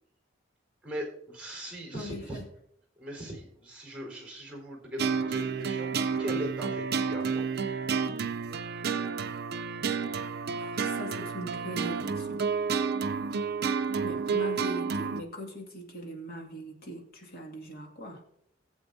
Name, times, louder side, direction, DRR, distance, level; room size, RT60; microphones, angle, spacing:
voice 1, 0.8-2.4 3.0-5.9 6.2-7.5, equal, 10° right, -1 dB, 4.1 m, -39 dB
voice 2, 1.9-2.4 10.5-12.4 14.0-18.2, equal, 55° left, 0 dB, 2.2 m, -40 dB
sound 1, 5.0-15.2, right 5 dB, 55° right, 0.5 m, -30 dB
19.0 x 7.9 x 2.7 m, 0.72 s
head